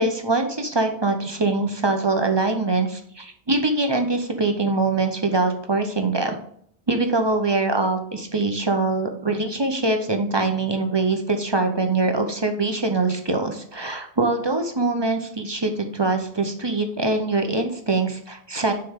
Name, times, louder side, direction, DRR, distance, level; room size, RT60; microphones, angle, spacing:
voice 1, 0.0-6.4 6.9-18.7, right 3 dB, 30° right, 5 dB, 0.6 m, -23 dB
6.4 x 4.6 x 3.6 m, 0.65 s
omnidirectional pair, 1.1 m